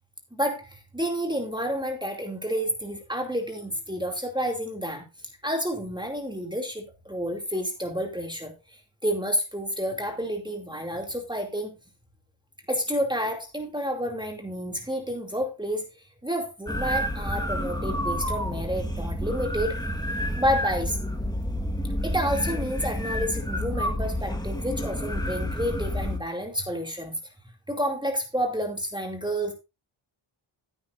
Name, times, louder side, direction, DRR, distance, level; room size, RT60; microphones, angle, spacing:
voice 1, 0.3-5.0 5.4-11.8 12.7-15.8 16.2-19.8 20.4-21.0 22.0-27.1 27.7-29.5, equal, 10° right, 3 dB, 2.5 m, -30 dB
sound 1, 16.7-26.2, equal, 10° left, 1.4 m, -29 dB
15.5 x 9.0 x 2.5 m, 0.26 s
wide cardioid pair, 120°, 50 cm